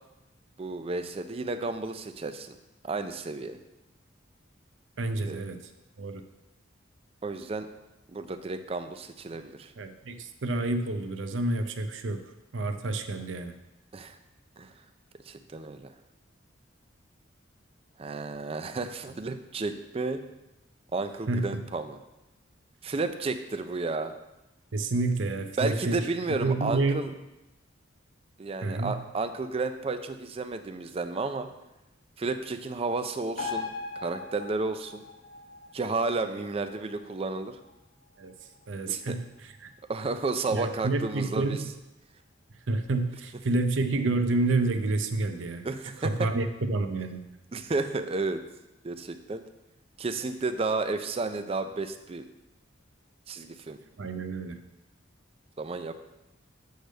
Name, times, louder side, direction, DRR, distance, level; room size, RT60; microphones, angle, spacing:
voice 1, 0.6-2.6 2.8-3.6 5.3-5.4 7.2-7.7 8.1-9.7 13.9-14.2 14.6-14.7 15.3-15.9 18.0-20.2 20.9-22.0 22.8-24.1 25.6-27.1 28.4-31.5 32.2-33.7 34.0-35.0 35.7-37.6 38.9-39.2 39.9-41.6 45.6-46.3 47.5-48.4 48.8-49.4 50.0-52.3 53.3-53.8 55.6-55.9, right 3 dB, 30° right, 9 dB, 0.4 m, -32 dB
voice 2, 5.0-5.6 6.0-6.2 9.8-12.2 12.5-13.6 21.3-21.6 24.7-27.0 28.6-29.0 38.2-38.3 38.7-39.7 40.5-41.7 42.7-45.7 46.0-47.3 54.0-54.6, right 2 dB, 80° right, 7 dB, 0.6 m, -29 dB
sound 1, 33.4-40.3 40.7-40.8, left 4 dB, 45° left, 0.9 m, -41 dB
7.9 x 3.4 x 6.5 m, 0.96 s
head